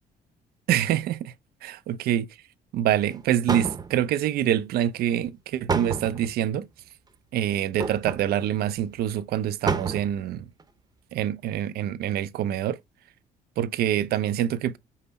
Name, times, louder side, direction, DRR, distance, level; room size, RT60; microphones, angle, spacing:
voice 1, 0.7-1.3 1.6-2.3 2.7-6.7 7.3-10.5 11.1-12.8 13.6-14.8, right 11 dB, 65° right, 0.5 m, -26 dB
sound 1, 3.1-3.2 3.5-4.2 5.7-6.4 7.8-8.3 8.8-8.9 9.1-9.2 9.7-10.2 10.6-10.7, right 5 dB, 25° right, 0.7 m, -29 dB
5.6 x 2.0 x 3.9 m
cardioid pair, 110°, 17 cm